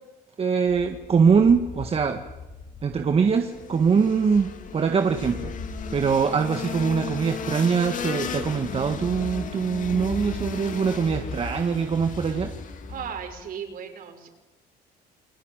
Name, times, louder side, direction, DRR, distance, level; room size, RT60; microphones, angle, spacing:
voice 1, 0.4-2.2 2.8-5.5 5.9-12.5, right 6 dB, 35° right, 6 dB, 1.8 m, -23 dB
sound 1, 0.7-13.5, left 3 dB, 30° left, 3.0 m, -40 dB
sound 2, 3.3-13.1, left 7 dB, 50° left, 2.7 m, -36 dB
voice 2, 12.9-14.3, right 7 dB, 60° right, 4 dB, 6.2 m, -37 dB
29.0 x 20.5 x 9.1 m, 1.1 s
cardioid pair, 110°, 17 cm